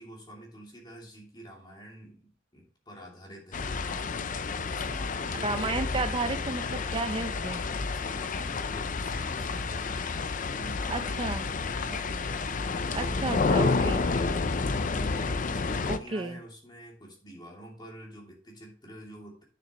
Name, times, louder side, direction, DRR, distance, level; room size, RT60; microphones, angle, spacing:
voice 1, 0.0-6.0 7.8-19.4, equal, 25° left, -2 dB, 2.8 m, -47 dB
sound 1, 3.5-16.0, left 4 dB, 45° left, 0.5 m, -30 dB
voice 2, 5.3-7.6 10.9-11.4 12.9-14.0 15.9-16.4, right 3 dB, 25° right, 9 dB, 0.6 m, -32 dB
9.4 x 6.8 x 3.1 m, 0.41 s
head